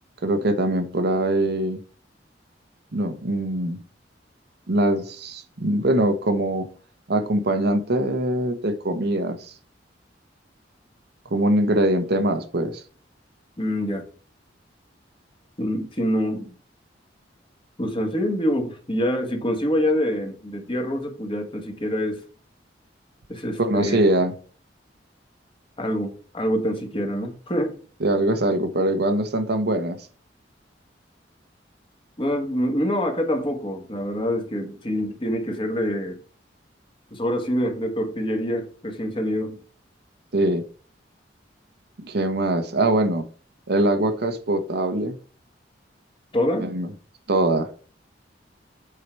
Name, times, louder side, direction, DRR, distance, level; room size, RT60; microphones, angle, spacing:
voice 1, 0.2-1.8 2.9-3.8 4.7-6.7 7.1-9.5 11.3-12.8 23.6-24.3 28.0-30.0 40.3-40.6 42.0-43.3 43.7-45.2 46.6-46.9 47.3-47.7, right 1 dB, 60° right, 8 dB, 0.9 m, -22 dB
voice 2, 13.6-14.0 15.6-16.5 17.8-22.2 23.3-24.0 25.8-27.8 32.2-36.2 37.1-39.6 46.3-46.7, equal, 30° left, 4 dB, 1.5 m, -25 dB
8.3 x 4.8 x 4.5 m, 0.41 s
head